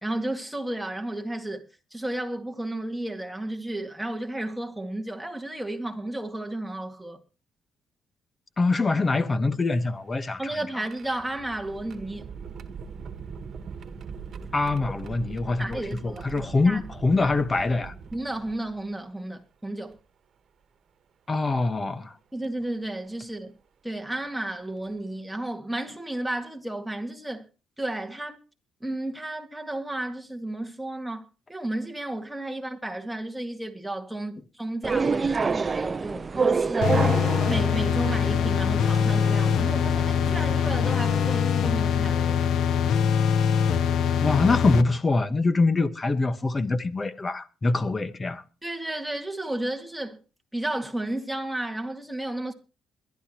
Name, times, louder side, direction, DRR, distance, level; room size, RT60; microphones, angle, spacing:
voice 1, 0.0-7.2 10.4-12.3 15.6-16.8 17.1-17.3 18.1-20.0 22.3-23.5 23.8-27.5 27.8-28.4 28.8-37.2 37.4-42.4 48.6-50.2 50.5-52.5, right 1 dB, 5° right, 2.1 m, -33 dB
voice 2, 8.6-10.4 14.5-17.9 21.3-22.1 44.2-48.4, left 3 dB, 30° left, 1.3 m, -24 dB
sound 1, 9.7-19.0 19.9-20.0 21.5-21.7 22.4-22.6 24.2-24.3 24.8-25.0, right 6 dB, 55° right, 1.5 m, -42 dB
sound 2, 34.8-41.4, right 5 dB, 35° right, 0.7 m, -29 dB
sound 3, 36.8-44.8, left 8 dB, 70° left, 0.9 m, -23 dB
22.0 x 12.0 x 3.0 m
cardioid pair, 90°, 0 cm